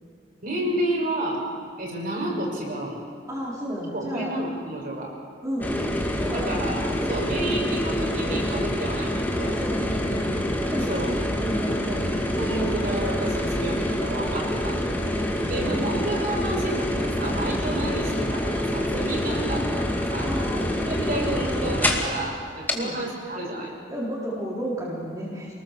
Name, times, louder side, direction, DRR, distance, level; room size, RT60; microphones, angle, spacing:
voice 1, 0.4-1.5 1.8-3.0 4.0-5.1 6.3-9.6 10.9-11.1 12.4-14.8 15.4-20.3 20.8-23.7, right 1 dB, 50° right, -1 dB, 6.0 m, -30 dB
voice 2, 3.3-4.3 5.4-7.9 9.6-10.4 10.7-11.0 11.4-12.7 15.3-16.3 20.2-20.8 22.7-23.0 23.9-25.5, equal, 20° right, -5 dB, 4.0 m, -33 dB
sound 1, 5.6-22.2 22.7-22.8, left 1 dB, 10° left, 2.3 m, -26 dB
27.5 x 19.5 x 7.4 m, 2.1 s
head